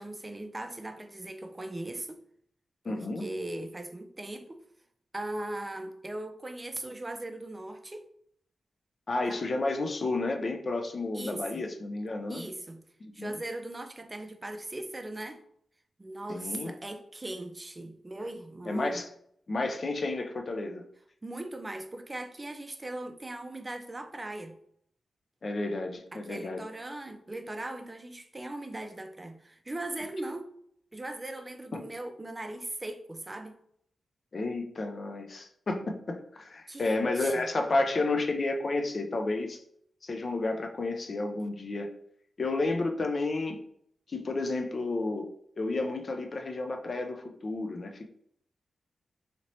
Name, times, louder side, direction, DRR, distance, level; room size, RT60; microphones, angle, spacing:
voice 1, 0.0-2.2 2.9-4.6 5.1-8.0 9.2-9.4 11.1-11.6 12.3-12.8 13.1-15.4 16.0-19.0 21.2-24.6 26.1-30.5 30.9-33.5 36.7-37.5, right 1 dB, 25° right, 0.4 m, -39 dB
voice 2, 2.8-3.2 9.1-12.4 13.0-13.3 16.3-16.7 18.6-19.1 19.5-20.8 25.4-26.7 31.7-31.8 34.3-39.6 40.0-41.9 42.4-43.6 44.1-48.1, left 2 dB, 55° left, 0.5 m, -31 dB
2.8 x 2.8 x 3.0 m
cardioid pair, 55°, 0 cm